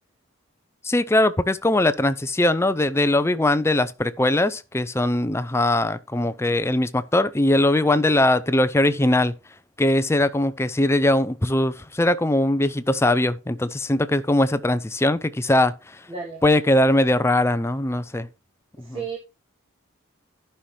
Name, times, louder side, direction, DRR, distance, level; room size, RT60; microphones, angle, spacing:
voice 1, 0.8-9.3 9.8-15.7 16.4-18.3 18.9-19.0, left 1 dB, 15° left, 0.5 m, -21 dB
voice 2, 16.1-16.4 18.8-19.2, right 5 dB, 25° right, 2.0 m, -33 dB
14.0 x 5.7 x 3.3 m
head